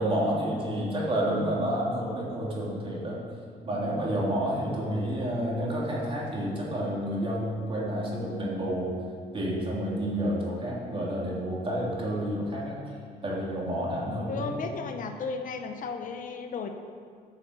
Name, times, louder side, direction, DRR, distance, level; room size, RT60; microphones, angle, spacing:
voice 1, 0.0-3.2 3.6-8.9 9.3-12.8 13.2-14.7, equal, 30° right, -4 dB, 3.1 m, -29 dB
voice 2, 14.3-16.7, left 5 dB, 50° left, 6 dB, 0.9 m, -34 dB
9.7 x 6.8 x 6.6 m, 2.2 s
cardioid pair, 110°, 17 cm